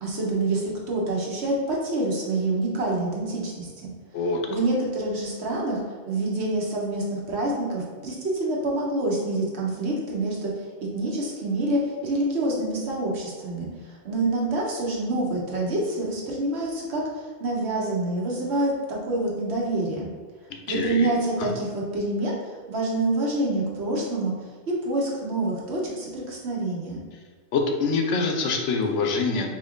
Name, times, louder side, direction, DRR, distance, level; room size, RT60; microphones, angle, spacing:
voice 1, 0.0-3.9 4.5-5.8 6.1-10.5 10.9-13.7 14.0-20.1 20.7-24.3 24.7-27.0, right 2 dB, 65° right, -3 dB, 1.2 m, -27 dB
voice 2, 20.5-21.1 21.4-21.5 27.5-29.5, left 4 dB, 85° left, 3 dB, 1.0 m, -25 dB
4.3 x 3.0 x 3.7 m, 1.5 s
omnidirectional pair, 1.2 m